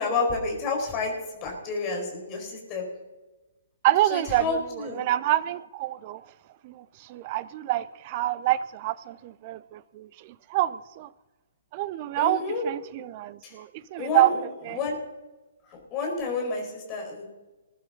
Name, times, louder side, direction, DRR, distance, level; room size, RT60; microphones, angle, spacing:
voice 1, 0.0-2.9 4.1-5.0 12.2-12.6 13.4-13.6 14.0-14.4 14.7-15.0 15.7-17.2, left 4 dB, 25° left, 0 dB, 4.8 m, -30 dB
voice 2, 3.8-6.2 6.6-11.1 11.7-14.3 14.6-14.8, right 15 dB, 35° right, 18 dB, 0.5 m, -27 dB
21.5 x 11.0 x 4.0 m, 1.1 s
figure-of-eight pair, 125°, 0 cm